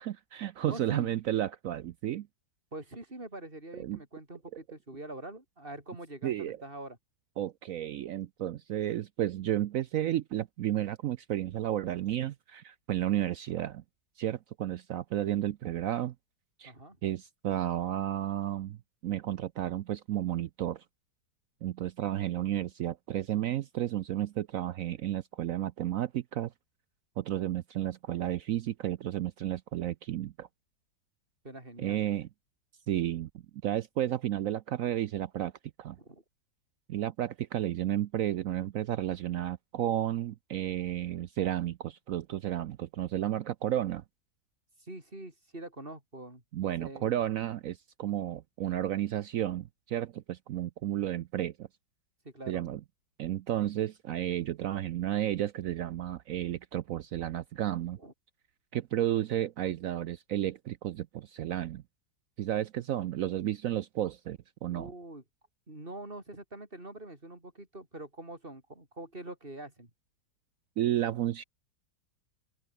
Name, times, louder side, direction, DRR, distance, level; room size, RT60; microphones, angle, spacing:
voice 1, 0.0-2.3 3.8-4.0 6.2-6.6 7.4-13.8 14.2-16.1 16.6-16.7 17.0-18.8 19.0-20.8 21.6-26.5 27.2-30.5 31.8-32.3 32.9-33.3 33.6-35.5 35.8-36.0 36.9-44.0 46.5-51.7 52.5-52.8 53.2-58.0 58.7-61.8 62.4-64.9 70.8-71.4, right 12 dB, 75° right, 0.7 m, -32 dB
voice 2, 0.6-1.2 2.7-7.0 16.6-17.0 31.4-32.0 36.0-36.2 44.8-46.4 46.8-47.1 52.2-52.6 58.0-58.1 64.7-65.2 65.7-69.9, right 2 dB, 25° right, 5.9 m, -44 dB
open air
omnidirectional pair, 2.0 m